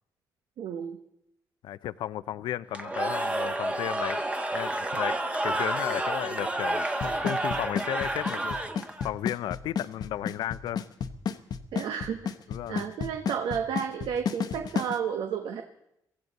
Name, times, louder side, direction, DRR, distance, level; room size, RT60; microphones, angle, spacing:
voice 1, 0.6-1.0 11.7-12.3 12.7-15.6, right 7 dB, 85° right, 1.1 m, -32 dB
voice 2, 1.6-4.2 4.5-5.2 5.4-8.6 9.0-10.8 12.5-12.9, left 12 dB, 90° left, 0.5 m, -34 dB
Cheering / Crowd, 2.7-9.1, right 1 dB, 15° right, 1.2 m, -30 dB
Drum kit / Snare drum / Bass drum, 7.0-15.0, left 7 dB, 60° left, 1.0 m, -31 dB
23.0 x 15.5 x 4.1 m
cardioid pair, 100°, 8 cm